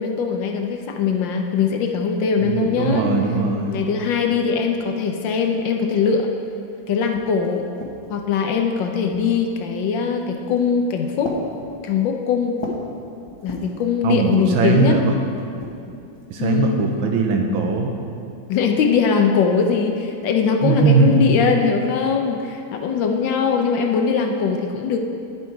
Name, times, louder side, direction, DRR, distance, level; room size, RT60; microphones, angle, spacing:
voice 1, 0.0-3.1 3.7-6.3 6.9-7.6 8.1-11.3 11.8-12.6 13.4-15.0 16.4-16.8 18.5-25.0, left 6 dB, 75° left, 3 dB, 1.4 m, -21 dB
voice 2, 2.4-3.8 14.0-15.1 16.3-17.9 20.6-21.4, right 4 dB, 90° right, 3 dB, 1.7 m, -19 dB
sound 1, 7.1-8.3 9.1-9.6 10.4-10.8 11.2-12.9 13.3-13.8 14.2-14.7 15.4-16.4, left 1 dB, 20° left, 0.8 m, -35 dB
10.5 x 7.3 x 4.7 m, 2.6 s
omnidirectional pair, 2.1 m